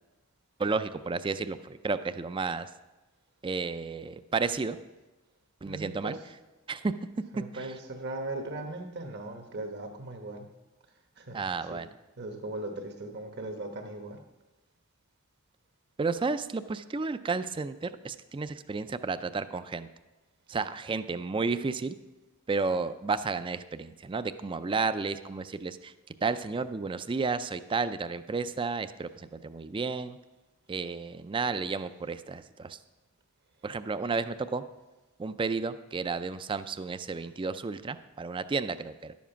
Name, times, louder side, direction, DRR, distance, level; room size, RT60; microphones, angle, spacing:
voice 1, 0.6-2.7 3.4-4.8 5.6-6.1 6.7-6.9 7.5-7.7 11.3-11.9 16.0-19.9 20.5-21.9 22.5-25.9 26.2-30.2 30.7-32.8 33.6-34.6 35.2-39.1, right 4 dB, 25° right, 12 dB, 0.4 m, -32 dB
voice 2, 5.6-6.3 7.3-10.5 11.2-11.4 11.7-11.8 12.2-14.2, right 2 dB, 55° right, 5 dB, 1.2 m, -38 dB
11.0 x 7.3 x 5.7 m, 1.1 s
head